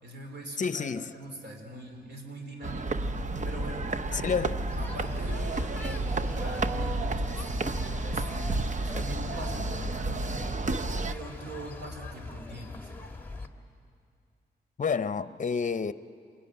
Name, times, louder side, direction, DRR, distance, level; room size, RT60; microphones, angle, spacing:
voice 1, 0.0-2.9 3.4-4.4 4.8-7.7 8.1-10.4 11.1-12.9, right 1 dB, 90° right, 4.3 m, -43 dB
voice 2, 0.6-1.1 4.1-4.6 14.8-15.9, left 6 dB, 45° left, 0.7 m, -29 dB
sound 1, 2.6-11.1, right 2 dB, 45° right, 0.9 m, -31 dB
Motor vehicle (road) / Engine, 3.0-9.9, left 2 dB, 5° right, 1.6 m, -42 dB
sound 2, 4.7-13.5, left 3 dB, 10° left, 1.8 m, -42 dB
27.5 x 22.0 x 9.7 m
wide cardioid pair, 95°, 18 cm